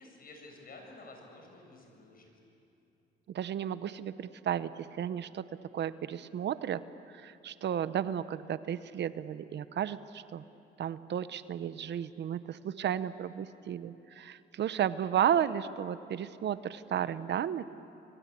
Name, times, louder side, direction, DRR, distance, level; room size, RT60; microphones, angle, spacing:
voice 1, 0.0-2.3, left 2 dB, 50° left, 2 dB, 7.3 m, -51 dB
voice 2, 3.3-5.4 5.7-6.8 7.1-10.4 10.8-17.6, right 9 dB, 60° right, 14 dB, 0.8 m, -33 dB
29.5 x 23.0 x 8.4 m, 2.8 s
cardioid pair, 90°, 20 cm